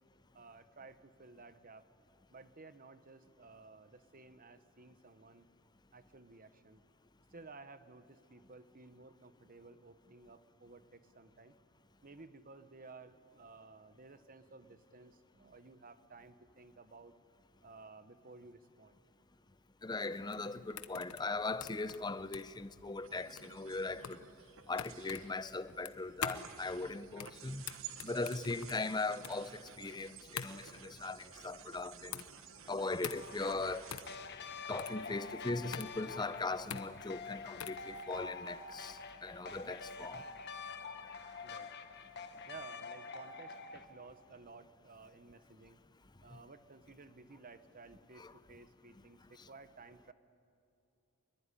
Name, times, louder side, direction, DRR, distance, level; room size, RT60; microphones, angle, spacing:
voice 1, 0.3-1.8 2.3-5.5 5.9-6.8 7.3-11.6 12.0-17.1 17.6-19.0 41.4-41.7 42.5-45.8 46.2-50.1, right 3 dB, 40° right, 1.1 m, -55 dB
voice 2, 19.8-24.2 24.7-27.6 28.0-32.2 32.7-33.8 34.7-40.2 48.2-48.3, left 3 dB, 20° left, 0.6 m, -39 dB
sound 1, 20.1-37.9, left 7 dB, 80° left, 1.1 m, -46 dB
sound 2, 23.0-34.2, right 9 dB, 65° right, 1.2 m, -54 dB
sound 3, 33.1-43.8, left 4 dB, 50° left, 1.4 m, -47 dB
24.0 x 22.0 x 9.9 m
head